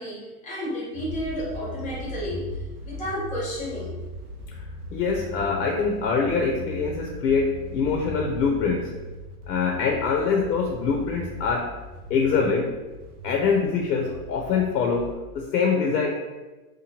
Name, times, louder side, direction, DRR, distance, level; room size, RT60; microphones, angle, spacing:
voice 1, 0.0-2.4 2.8-3.9, equal, 15° left, -5 dB, 0.8 m, -32 dB
sound 1, 0.9-15.2, equal, 65° right, 0.7 m, -39 dB
voice 2, 4.9-9.0 9.5-11.8 12.1-12.7 13.2-16.1, left 5 dB, 80° left, 1 dB, 0.6 m, -24 dB
2.8 x 2.1 x 2.8 m, 1.2 s
hypercardioid pair, 135°, 48 cm